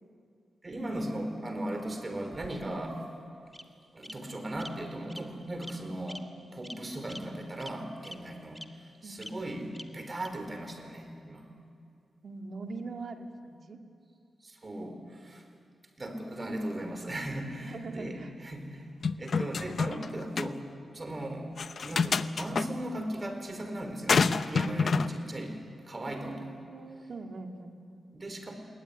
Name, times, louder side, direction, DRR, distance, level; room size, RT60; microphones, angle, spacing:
voice 1, 0.6-3.0 3.9-6.3 6.5-8.6 9.0-11.4 14.4-15.5 16.0-18.9 19.2-20.6 20.9-21.5 21.8-25.6 25.9-26.5 28.1-28.5, right 1 dB, 30° right, 5 dB, 4.3 m, -37 dB
Bird vocalization bird call bird song, 2.1-2.9 3.5-3.6 4.0-4.1 4.6-4.7 5.1-5.2 5.6-5.7 6.1-6.2 6.6-6.8 7.1-7.2 7.6-7.7 8.0-8.1 8.5-8.6 9.2-9.3 9.7-9.8 10.2-10.3, equal, 5° left, 1.8 m, -44 dB
voice 2, 12.2-13.8 17.6-18.3 24.6-25.0 26.2-28.0, right 3 dB, 60° right, 3 dB, 2.3 m, -42 dB
sound 1, 19.0-20.1 20.4-20.5 21.6-22.7 24.1-25.1, left 5 dB, 60° left, 0.7 m, -27 dB
21.5 x 19.0 x 10.0 m, 2.5 s
cardioid pair, 70°, 0 cm